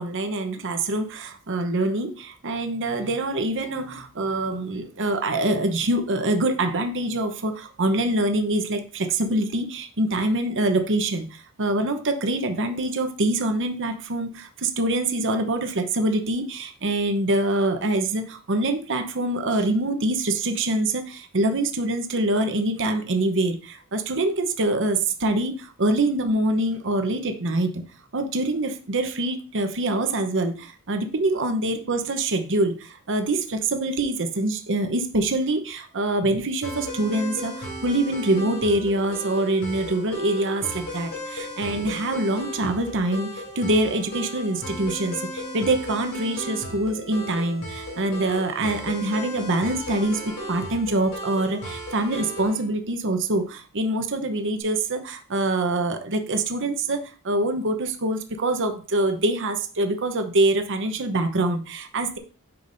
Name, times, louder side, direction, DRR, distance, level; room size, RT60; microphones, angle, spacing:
voice 1, 0.0-27.8 28.1-50.2 50.5-62.2, right 2 dB, 60° right, 7 dB, 0.9 m, -25 dB
sound 1, 36.6-52.7, equal, 90° left, 3.4 m, -35 dB
8.5 x 6.0 x 2.6 m, 0.37 s
head